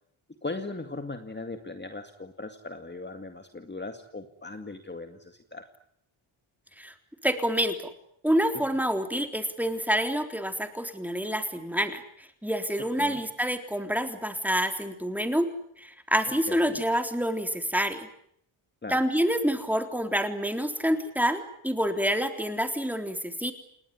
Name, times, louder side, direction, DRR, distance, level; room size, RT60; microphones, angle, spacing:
voice 1, 0.3-5.7 8.5-8.6 13.0-13.2 16.5-16.8 18.8-19.0, left 3 dB, 20° left, 7 dB, 2.1 m, -38 dB
voice 2, 7.2-7.9 8.2-15.5 15.8-18.1 18.9-23.5, equal, 5° right, 7 dB, 3.8 m, -27 dB
29.0 x 19.5 x 9.6 m, 0.71 s
cardioid pair, 95°, 49 cm